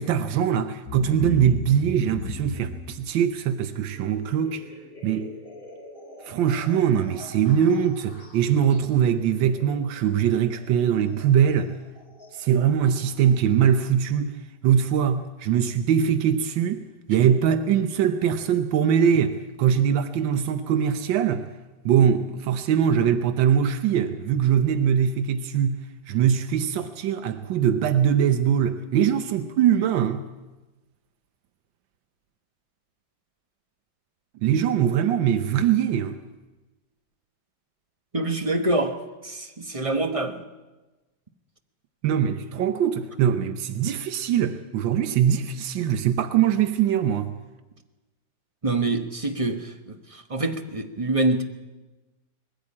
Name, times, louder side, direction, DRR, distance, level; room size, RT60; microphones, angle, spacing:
voice 1, 0.0-4.7 5.0-5.3 6.2-11.8 12.3-16.8 17.1-21.5 21.8-25.8 26.1-30.2 34.4-36.2 42.0-47.3, right 8 dB, 90° right, 1.6 m, -22 dB
sound 1, 0.9-13.5, left 3 dB, 45° left, 6.0 m, -41 dB
voice 2, 38.1-40.4 48.6-51.4, right 2 dB, 25° right, 0.9 m, -26 dB
20.5 x 15.5 x 8.6 m
omnidirectional pair, 2.0 m